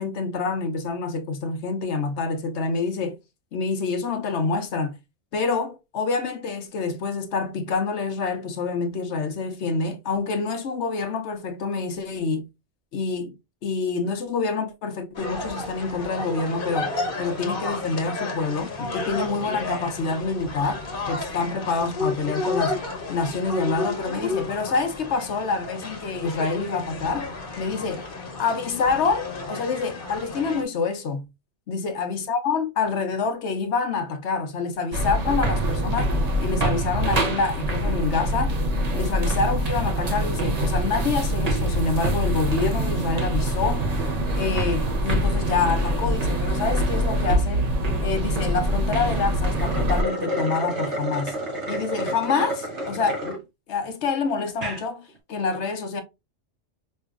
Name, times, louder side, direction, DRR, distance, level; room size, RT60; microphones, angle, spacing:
voice 1, 0.0-3.2 3.5-5.0 5.3-12.5 12.9-13.3 13.6-16.9 17.2-22.8 23.1-27.3 27.6-28.1 28.4-31.2 31.7-38.6 38.9-43.9 44.3-47.7 48.0-51.3 51.7-53.4 53.7-56.0, left 4 dB, 70° left, 1.0 m, -27 dB
sound 1, 15.1-30.6, left 3 dB, 50° left, 1.1 m, -32 dB
sound 2, 34.9-50.0, right 1 dB, 40° right, 0.8 m, -24 dB
sound 3, 49.4-53.4 53.9-54.0 54.5-54.8, equal, 75° right, 1.7 m, -30 dB
5.2 x 2.7 x 2.4 m
omnidirectional pair, 1.2 m